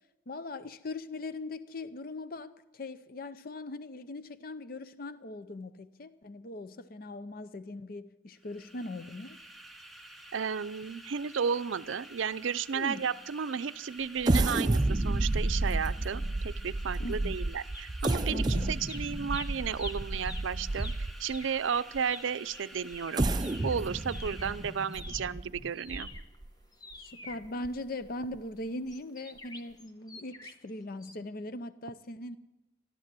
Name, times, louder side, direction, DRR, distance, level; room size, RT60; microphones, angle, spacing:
voice 1, 0.3-9.4 12.7-13.0 17.0-17.4 18.3-18.8 24.4-24.5 27.0-32.4, left 2 dB, 50° left, 13 dB, 0.6 m, -40 dB
sound 1, 8.4-25.2, right 1 dB, ahead, 0.9 m, -51 dB
voice 2, 10.3-23.3 23.6-26.1, right 6 dB, 85° right, 15 dB, 0.5 m, -33 dB
sound 2, 14.2-21.4 21.9-22.0 22.9-26.5 26.9-27.0 27.4-27.7, right 2 dB, 20° right, 0.5 m, -31 dB
sound 3, 17.7-18.6 18.8-24.6 24.9-28.1 28.9-30.7 31.0-31.2, left 2 dB, 20° left, 1.1 m, -47 dB
14.5 x 12.0 x 7.5 m, 0.97 s
head